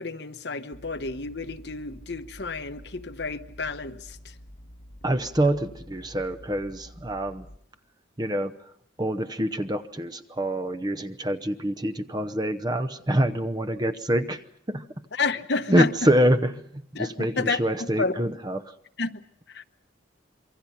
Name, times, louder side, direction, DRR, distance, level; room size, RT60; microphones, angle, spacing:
voice 1, 0.0-4.2 15.2-15.9 16.9-17.6 18.0-18.1 19.0-19.6, left 4 dB, 60° left, 1.0 m, -30 dB
sound 1, 0.7-7.6, equal, 40° left, 1.2 m, -48 dB
voice 2, 5.0-7.5 8.2-8.7 9.0-14.8 15.7-18.7, right 1 dB, 20° right, 0.8 m, -26 dB
26.5 x 24.0 x 5.7 m
head